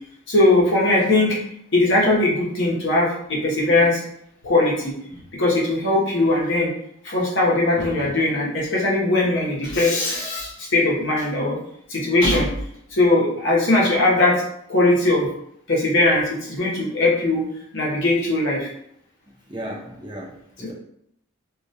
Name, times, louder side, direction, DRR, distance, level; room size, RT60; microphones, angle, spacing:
voice 1, 0.3-1.4 1.7-4.0 4.4-4.9 5.3-6.7 7.0-11.6 11.9-12.5 12.9-14.4 14.7-15.3 15.7-17.4 17.7-18.7 20.6-20.7, left 2 dB, 55° left, -4 dB, 0.7 m, -20 dB
voice 2, 19.5-20.7, right 1 dB, 20° right, -2 dB, 0.4 m, -35 dB
2.3 x 2.1 x 2.6 m, 0.73 s
head